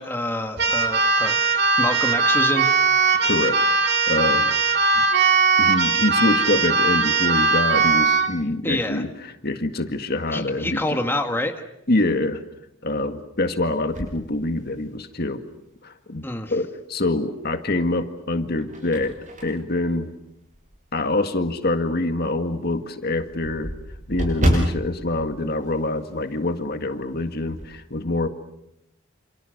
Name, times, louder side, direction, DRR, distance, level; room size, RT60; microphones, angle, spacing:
voice 1, 0.0-2.7 8.6-9.0 10.3-11.5 16.2-16.5, left 1 dB, 10° left, 5 dB, 1.9 m, -27 dB
Keyboard (musical), 0.6-8.3, right 4 dB, 55° right, 2.6 m, -19 dB
voice 2, 3.2-3.6 4.1-4.5 5.0-5.1 5.6-11.1 11.9-12.4 12.8-15.4 15.8-19.2 19.4-20.1 20.9-23.7 24.1-28.3, left 2 dB, 50° left, 7 dB, 1.9 m, -25 dB
sound 1, 13.9-15.2 15.7-15.8 17.3-17.8 18.3-20.9 21.4-21.5 21.9-22.0 22.3-22.4 22.6-26.4 26.6-26.9 27.2-27.8, equal, 40° right, 7.8 m, -29 dB
29.0 x 28.0 x 6.6 m, 0.84 s
head